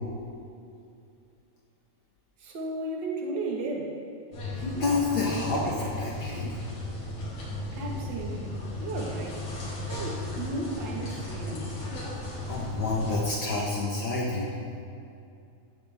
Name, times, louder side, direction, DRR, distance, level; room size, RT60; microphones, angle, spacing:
voice 1, 2.4-3.9 7.7-9.4 9.9-11.8, right 2 dB, 50° right, -1 dB, 1.5 m, -34 dB
sound 1, 4.3-13.2, left 1 dB, 50° left, 4.2 m, -35 dB
voice 2, 4.6-6.6 12.5-14.5, left 3 dB, 80° left, -3 dB, 1.1 m, -28 dB
15.5 x 13.5 x 3.6 m, 2.6 s
omnidirectional pair, 4.3 m